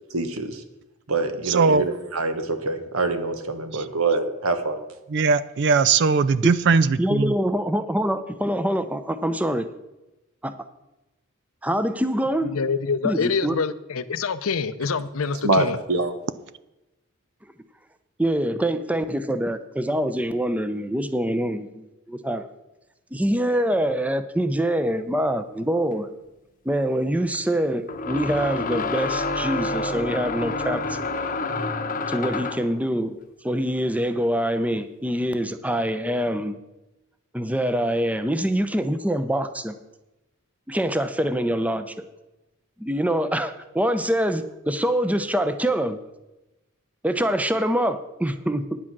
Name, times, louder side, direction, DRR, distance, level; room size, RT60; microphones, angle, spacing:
voice 1, 0.1-0.6 1.1-4.8 15.4-16.1, right 3 dB, 85° right, 1.3 m, -25 dB
voice 2, 1.4-1.8 3.7-3.8 5.1-6.9, right 5 dB, 55° right, 0.4 m, -19 dB
voice 3, 7.0-9.7 10.4-10.5 11.6-12.5 13.0-13.6 18.2-22.4 23.1-26.1 26.7-31.0 32.1-33.2 33.4-36.6 37.3-39.7 40.7-41.9 42.8-46.0 47.0-48.6, right 1 dB, 5° right, 0.6 m, -25 dB
voice 4, 12.4-15.8, left 5 dB, 75° left, 0.6 m, -26 dB
sound 1, 25.9-26.0 27.9-32.7, left 3 dB, 40° left, 0.8 m, -28 dB
9.8 x 8.8 x 6.0 m
head